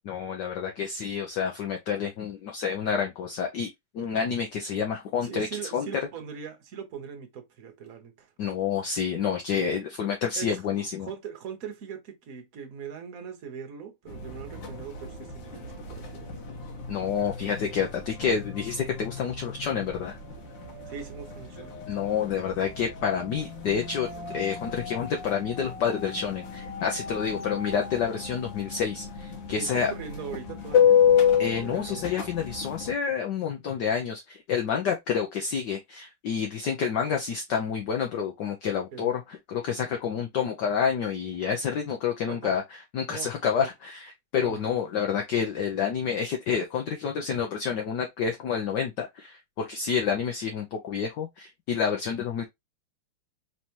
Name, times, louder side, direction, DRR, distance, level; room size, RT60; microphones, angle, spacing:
voice 1, 0.0-3.7 3.9-5.5 5.7-5.9 8.4-11.1 16.9-20.2 21.9-24.1 24.3-29.9 31.4-42.6 42.9-52.4, left 7 dB, 65° left, 1.2 m, -29 dB
voice 2, 5.2-8.3 9.5-9.7 10.4-16.3 20.9-22.1 29.5-32.1 38.9-39.1 42.3-42.5 43.1-43.3 43.6-43.7 44.3-44.8, right 7 dB, 45° right, 1.3 m, -41 dB
sound 1, 14.1-32.9, left 8 dB, 80° left, 2.1 m, -30 dB
4.4 x 3.3 x 2.8 m
omnidirectional pair, 2.4 m